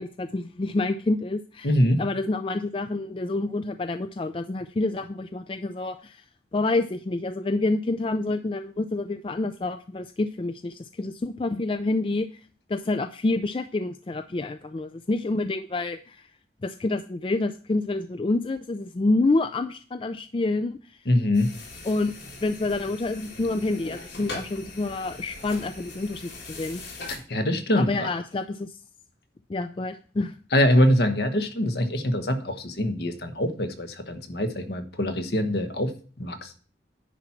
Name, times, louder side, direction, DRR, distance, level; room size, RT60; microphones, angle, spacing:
voice 1, 0.0-6.2 6.5-12.3 12.7-16.3 16.6-21.0 21.8-22.1 22.4-26.8 27.7-28.8 29.5-30.3, left 2 dB, 30° left, 9 dB, 0.3 m, -28 dB
voice 2, 1.6-2.0 21.1-21.5 27.1-28.1 30.5-35.9 36.2-36.6, left 1 dB, 65° left, 8 dB, 1.1 m, -24 dB
sound 1, 21.3-27.2, left 2 dB, 90° left, 3.9 m, -41 dB
10.0 x 4.4 x 5.8 m, 0.41 s
head